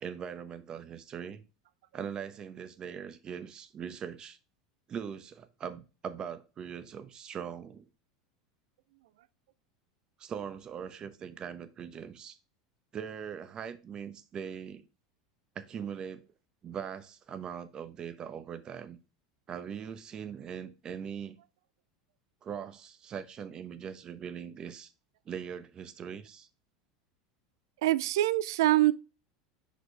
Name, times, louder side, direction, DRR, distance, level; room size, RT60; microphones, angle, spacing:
voice 1, 0.0-1.4 1.9-4.4 4.9-7.9 10.2-12.4 12.9-14.8 15.5-16.2 16.6-19.0 19.5-21.4 22.4-24.9 25.3-26.5, right 7 dB, 35° right, 0.9 m, -41 dB
voice 2, 27.8-28.9, right 15 dB, 70° right, 0.4 m, -24 dB
6.2 x 5.1 x 3.3 m
hypercardioid pair, 85°, 2 cm